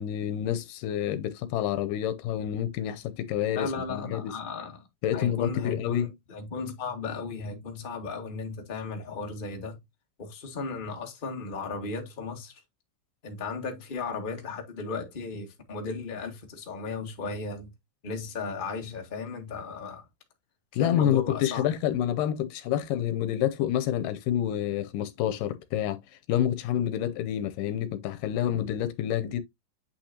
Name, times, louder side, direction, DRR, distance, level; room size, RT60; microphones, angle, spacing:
voice 1, 0.0-4.4 5.0-6.1 20.7-26.0 26.3-29.4, left 10 dB, 80° left, 2.3 m, -28 dB
voice 2, 3.5-9.8 10.2-12.6 13.2-17.7 18.0-20.1 20.7-21.6, left 4 dB, 25° left, 1.1 m, -35 dB
8.5 x 5.7 x 2.8 m
omnidirectional pair, 3.8 m